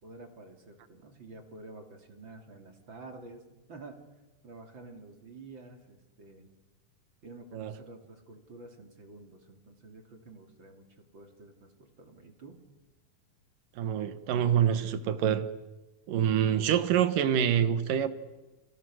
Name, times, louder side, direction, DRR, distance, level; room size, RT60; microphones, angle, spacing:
voice 1, 0.0-3.4 3.7-4.0 4.4-6.5 7.2-12.6, right 3 dB, 35° right, 3.0 m, -49 dB
voice 2, 13.8-15.5 16.1-18.1, right 9 dB, 70° right, 2.8 m, -26 dB
30.0 x 26.5 x 6.3 m
omnidirectional pair, 4.2 m